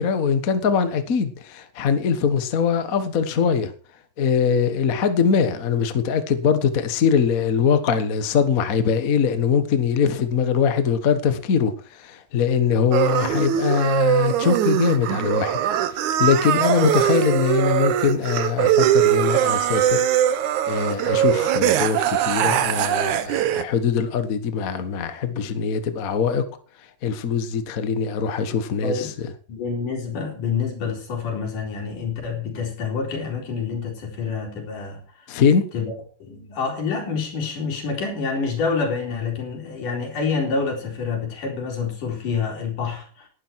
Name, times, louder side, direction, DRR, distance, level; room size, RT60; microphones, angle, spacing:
voice 1, 0.0-3.7 4.2-15.6 15.9-20.0 20.7-26.4 27.0-29.1 35.3-35.7, left 6 dB, 50° left, 1.0 m, -22 dB
sound 1, 12.9-23.6, right 11 dB, 75° right, 2.4 m, -21 dB
voice 2, 29.5-35.4 35.7-43.3, left 5 dB, 85° left, 5.9 m, -27 dB
18.5 x 11.5 x 4.7 m
omnidirectional pair, 3.6 m